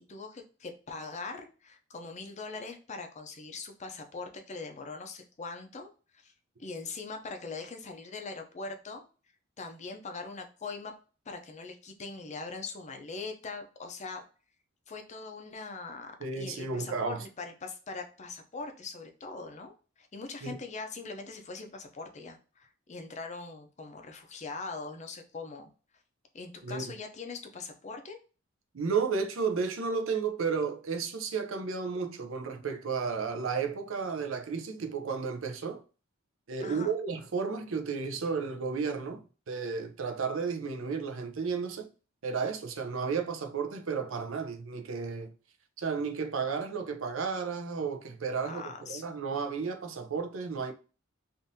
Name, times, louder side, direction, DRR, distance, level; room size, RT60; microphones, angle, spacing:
voice 1, 0.0-6.3 6.6-9.0 9.6-10.9 11.3-14.2 14.9-25.7 26.3-28.2 36.6-36.9 48.4-49.1, left 4 dB, 35° left, 0.6 m, -41 dB
voice 2, 16.2-17.2 20.4-20.6 26.6-26.9 28.7-35.8 36.5-41.9 42.2-45.3 45.8-50.7, right 5 dB, 70° right, 0.6 m, -33 dB
3.6 x 2.6 x 2.7 m
head